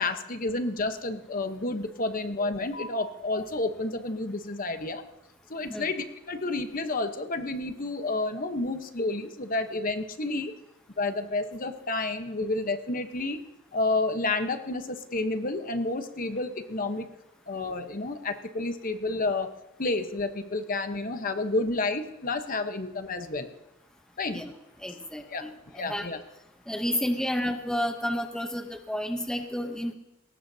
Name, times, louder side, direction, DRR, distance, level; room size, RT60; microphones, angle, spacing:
voice 1, 0.0-5.0 5.5-10.5 11.0-13.4 13.7-17.1 17.5-19.5 19.8-23.5 24.2-24.4 25.3-25.4 25.7-26.2, left 2 dB, 45° left, 7 dB, 1.1 m, -30 dB
voice 2, 24.8-26.1 26.7-29.9, equal, 5° left, 5 dB, 0.9 m, -31 dB
20.5 x 18.0 x 2.8 m, 0.90 s
head